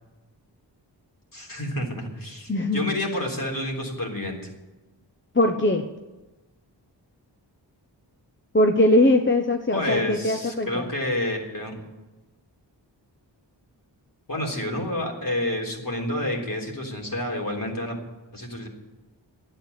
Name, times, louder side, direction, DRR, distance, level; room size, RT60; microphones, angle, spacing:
voice 1, 1.3-4.5 9.7-11.8 14.3-18.0 18.3-18.7, left 1 dB, 50° left, 0 dB, 3.8 m, -29 dB
voice 2, 2.5-2.8 5.3-5.9 8.5-10.8, left 1 dB, 25° left, 4 dB, 1.0 m, -21 dB
11.5 x 8.9 x 9.6 m, 1.1 s
wide cardioid pair, 50°, 43 cm